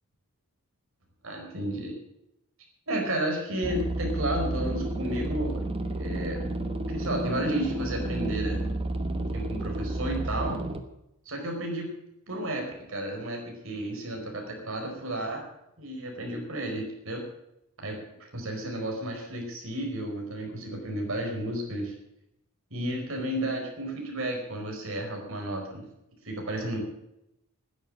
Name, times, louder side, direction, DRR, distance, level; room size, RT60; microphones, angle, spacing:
voice 1, 1.2-2.0 2.9-5.7 6.0-6.4 6.9-8.6 9.3-10.6 11.2-11.9 12.3-15.4 15.8-17.2 17.8-17.9 18.2-21.9 22.7-25.8 26.2-26.8, right 1 dB, 65° right, 1 dB, 4.7 m, -32 dB
sound 1, 3.6-10.8, right 2 dB, 25° right, 1.2 m, -31 dB
12.5 x 10.5 x 8.6 m, 0.83 s
head